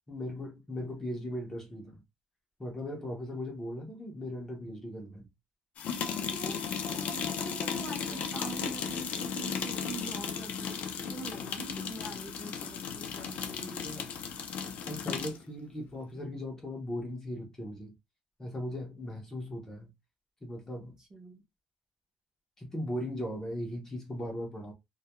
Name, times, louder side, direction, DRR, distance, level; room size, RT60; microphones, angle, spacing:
voice 1, 0.1-2.0 2.6-5.3 13.7-14.0 14.9-17.9 18.4-19.9 20.4-21.0 22.6-24.7, left 1 dB, 15° left, 0.6 m, -38 dB
sound 1, 5.8-15.4, left 7 dB, 55° left, 0.4 m, -35 dB
voice 2, 6.9-10.8 11.0-13.8 21.1-21.4, right 3 dB, 20° right, 0.7 m, -44 dB
2.2 x 2.2 x 2.9 m
cardioid pair, 170°, 3 cm